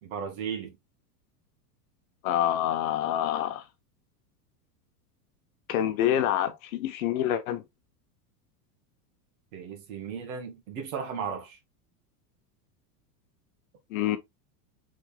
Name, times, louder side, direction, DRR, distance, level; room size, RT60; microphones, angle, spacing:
voice 1, 0.0-0.8 9.5-11.6, right 6 dB, 55° right, 2.1 m, -35 dB
voice 2, 2.2-3.6 5.7-7.6 13.9-14.2, left 11 dB, 55° left, 0.9 m, -27 dB
4.8 x 4.3 x 2.3 m
supercardioid pair, 170°, 49 cm